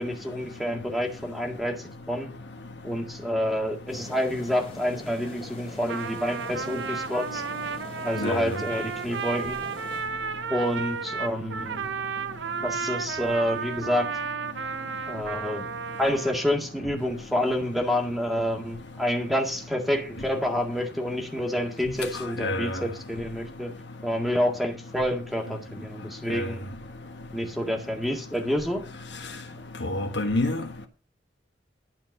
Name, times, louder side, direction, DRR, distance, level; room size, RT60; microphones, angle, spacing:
voice 1, 0.0-2.4 2.8-7.4 8.0-9.7 10.5-11.8 12.6-14.1 15.1-15.7 16.0-23.7 24.0-26.6 27.3-28.9, equal, ahead, 1.8 m, -28 dB
sound 1, 3.9-10.0, left 1 dB, 30° left, 2.9 m, -44 dB
Trumpet, 5.7-16.6, right 6 dB, 75° right, 0.8 m, -33 dB
voice 2, 8.2-8.6 22.4-22.8 26.3-26.5 29.8-30.6, left 1 dB, 65° left, 1.6 m, -27 dB
12.0 x 4.5 x 7.9 m
head